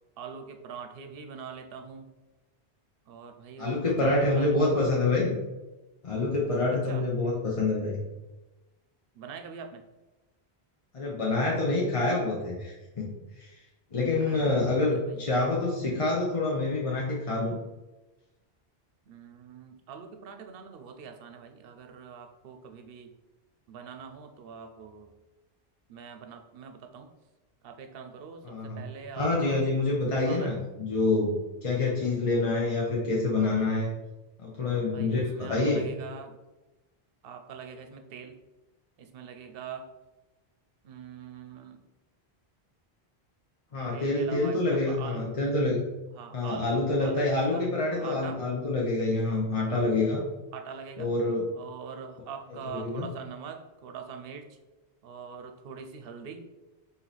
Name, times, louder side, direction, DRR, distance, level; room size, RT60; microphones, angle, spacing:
voice 1, 0.2-2.1 3.1-4.8 6.7-7.1 9.1-9.8 14.2-14.5 15.0-15.3 19.1-23.1 23.7-25.1 25.9-27.1 27.6-29.6 30.2-30.6 32.0-32.2 34.9-36.4 37.2-38.4 39.0-39.9 40.8-41.8 43.9-45.3 46.1-48.4 50.5-51.1 51.5-54.6 55.0-56.5, right 6 dB, 65° right, 6 dB, 0.8 m, -43 dB
voice 2, 3.6-5.3 6.0-8.0 10.9-13.1 13.4-13.5 13.9-17.6 28.4-28.9 29.2-31.4 31.6-33.9 34.4-35.8 43.7-45.8 46.3-50.2 51.0-51.5 52.7-53.1, left 2 dB, 35° left, -4 dB, 0.7 m, -27 dB
4.5 x 2.8 x 4.0 m, 1.1 s
omnidirectional pair, 1.1 m